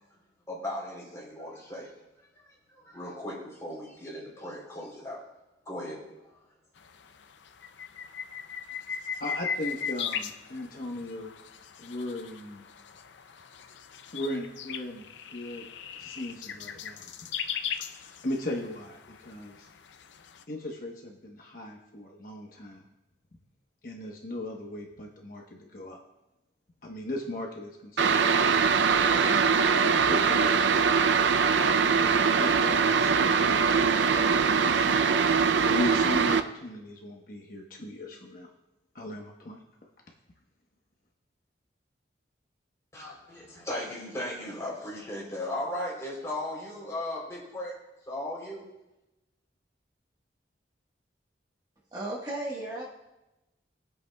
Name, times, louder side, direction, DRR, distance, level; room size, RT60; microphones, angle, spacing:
voice 1, 0.5-1.9 2.8-5.2 5.7-6.1 42.9-47.8 48.1-48.7, left 1 dB, 15° left, -4 dB, 3.4 m, -36 dB
sound 1, 6.8-20.4, left 7 dB, 80° left, 0.5 m, -39 dB
voice 2, 9.2-11.4 11.8-12.7 14.1-15.6 16.0-17.1 17.8-19.7 20.5-22.8 23.8-26.0 26.8-29.1 30.0-31.1 32.2-38.5 38.9-39.6, left 1 dB, 50° left, 0 dB, 1.1 m, -38 dB
sound 2, 28.0-36.4, right 5 dB, 80° right, 0.5 m, -22 dB
voice 3, 51.9-52.9, right 1 dB, 20° right, -4 dB, 1.4 m, -34 dB
21.5 x 7.9 x 2.3 m, 0.98 s
head